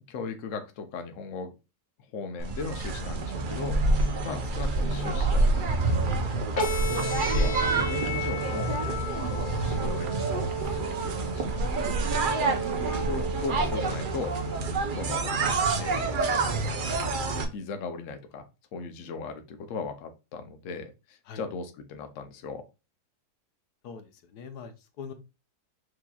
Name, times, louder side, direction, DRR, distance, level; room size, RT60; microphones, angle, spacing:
voice 1, 0.1-1.5 2.1-3.8 4.2-6.5 6.9-8.8 9.3-11.8 12.5-14.3 15.0-15.3 15.8-16.8 17.5-18.5 18.7-22.6, left 4 dB, 60° left, 7 dB, 1.0 m, -38 dB
sound 1, 2.4-17.4, right 3 dB, 65° right, 0.5 m, -27 dB
sound 2, 6.6-14.6, right 2 dB, 40° left, 1.0 m, -34 dB
voice 2, 23.8-24.7 25.0-25.1, left 6 dB, 85° left, 7 dB, 1.2 m, -40 dB
6.3 x 2.9 x 2.3 m, 0.28 s
omnidirectional pair, 1.7 m